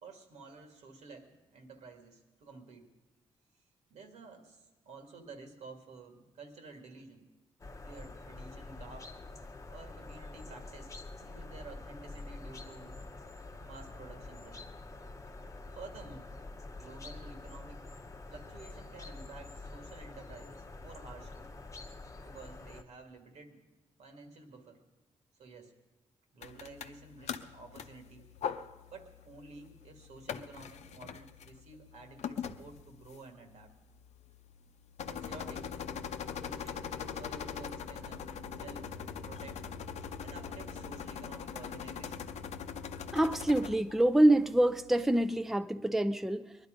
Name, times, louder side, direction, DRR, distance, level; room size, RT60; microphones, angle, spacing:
voice 1, 0.0-2.9 3.9-7.2 7.8-9.1 9.7-10.9 11.2-13.0 13.6-14.7 15.7-16.3 16.8-17.8 18.3-21.5 22.2-23.7 24.0-24.8 25.4-25.7 26.3-28.3 28.9-33.7 35.0-35.7 36.3-38.2 38.5-38.9 39.2-39.6 40.2-42.3, right 3 dB, 80° right, 4 dB, 2.2 m, -51 dB
sound 1, 7.6-22.8, left 2 dB, 25° left, 0.9 m, -47 dB
sound 2, 26.4-45.3, left 7 dB, 75° left, 0.7 m, -42 dB
voice 2, 43.1-46.6, right 1 dB, ahead, 10 dB, 0.5 m, -26 dB
20.0 x 11.5 x 5.2 m, 1.1 s
cardioid pair, 85°, 11 cm